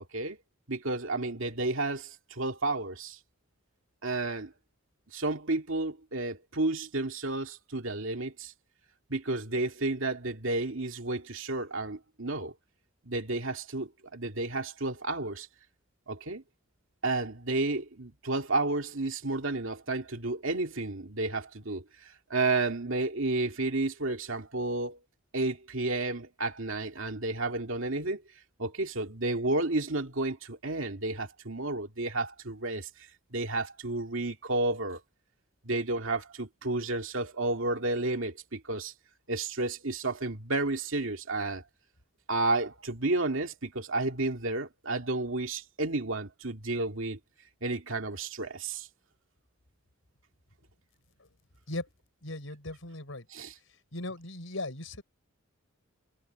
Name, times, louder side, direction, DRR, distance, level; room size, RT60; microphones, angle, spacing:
voice 1, 0.7-3.2 4.0-4.5 5.1-8.5 9.1-12.5 13.0-15.5 16.1-16.4 17.0-21.8 22.3-25.0 25.3-28.2 28.6-32.9 33.3-35.0 35.6-38.9 39.3-41.6 42.3-47.2 47.6-48.9 53.3-53.5, right 2 dB, 65° right, 2.6 m, -31 dB
voice 2, 52.2-53.3 53.9-55.0, left 2 dB, 70° left, 5.4 m, -38 dB
head